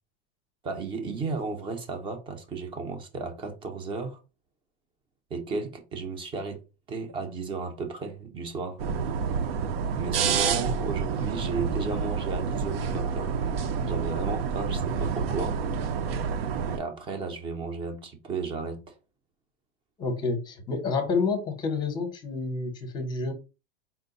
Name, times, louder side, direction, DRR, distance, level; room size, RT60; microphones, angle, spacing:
voice 1, 0.6-4.2 5.3-8.8 10.0-13.3 13.9-15.6 16.7-18.9, right 4 dB, 15° right, 0.6 m, -34 dB
sound 1, 8.8-16.8, right 6 dB, 70° right, 0.7 m, -28 dB
voice 2, 20.0-23.3, left 4 dB, 15° left, 0.8 m, -29 dB
4.5 x 2.2 x 3.8 m
supercardioid pair, 160°, 31 cm